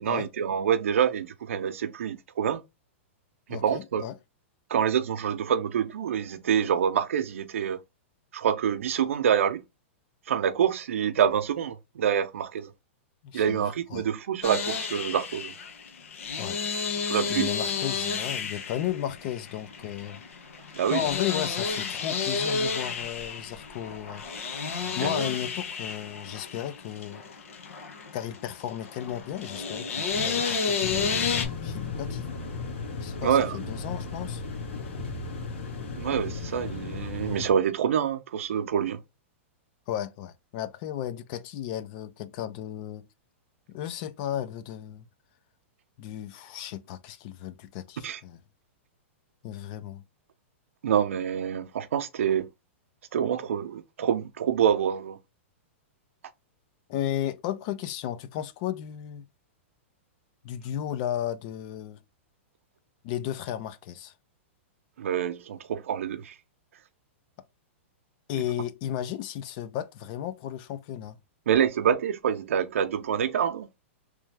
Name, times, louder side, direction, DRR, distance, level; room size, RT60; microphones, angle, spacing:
voice 1, 0.0-2.6 3.5-4.0 4.7-7.8 8.3-9.6 10.3-12.7 13.3-15.6 17.0-17.5 20.7-21.1 24.8-25.3 33.2-33.7 36.0-39.0 48.0-48.2 50.8-52.5 53.1-55.2 65.0-66.3 71.5-73.7, right 8 dB, 80° right, 0.7 m, -26 dB
voice 2, 3.5-4.1 13.2-14.0 16.3-16.6 17.3-20.2 20.9-24.3 24.9-27.2 28.1-32.3 33.0-34.4 39.9-43.1 43.7-45.1 46.0-48.4 49.4-50.0 56.9-59.2 60.4-62.0 63.0-64.1 68.3-71.2, left 11 dB, 40° left, 0.5 m, -34 dB
sound 1, 14.4-31.5, left 5 dB, 90° left, 1.2 m, -31 dB
sound 2, 30.8-37.5, left 4 dB, 70° left, 1.8 m, -35 dB
3.4 x 3.2 x 3.3 m
hypercardioid pair, 155°, 7 cm